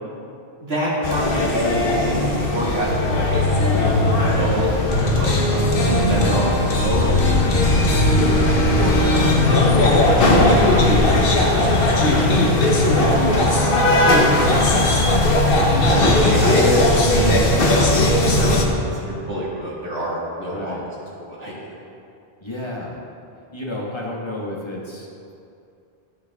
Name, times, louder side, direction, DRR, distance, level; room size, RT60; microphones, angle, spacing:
voice 1, 0.6-7.5 7.8-8.3 8.7-11.1 15.7-17.5 17.7-20.8 21.2-21.5, equal, 80° right, -6 dB, 2.5 m, -26 dB
sound 1, 1.0-18.6, left 2 dB, 65° left, 1.2 m, -17 dB
voice 2, 8.0-8.4 12.0-12.5 12.9-15.0 20.5-20.8 22.4-23.0 23.5-25.1, left 1 dB, 25° left, -3 dB, 1.4 m, -30 dB
13.0 x 7.0 x 3.5 m, 2.5 s
omnidirectional pair, 1.0 m